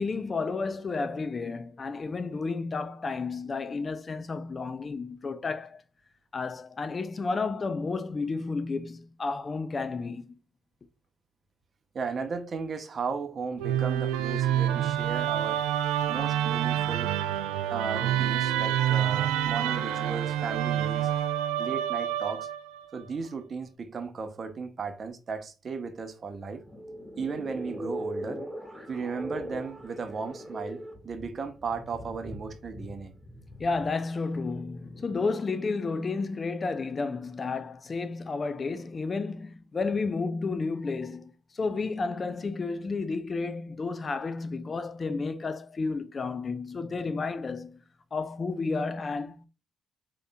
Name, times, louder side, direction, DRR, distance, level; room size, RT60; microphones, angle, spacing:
voice 1, 0.0-5.8 6.3-10.4 33.6-47.8 48.1-49.5, left 4 dB, 40° left, 0.5 m, -32 dB
voice 2, 11.9-15.6 16.1-17.1 17.7-21.1 21.6-22.5 22.9-26.6 27.2-28.4 28.9-33.1, right 5 dB, 50° right, 0.7 m, -35 dB
Musical instrument, 13.6-22.8, right 11 dB, 80° right, 0.3 m, -27 dB
sound 1, 26.6-35.2, equal, 5° right, 1.7 m, -40 dB
4.9 x 3.0 x 2.2 m
hypercardioid pair, 50°, 0 cm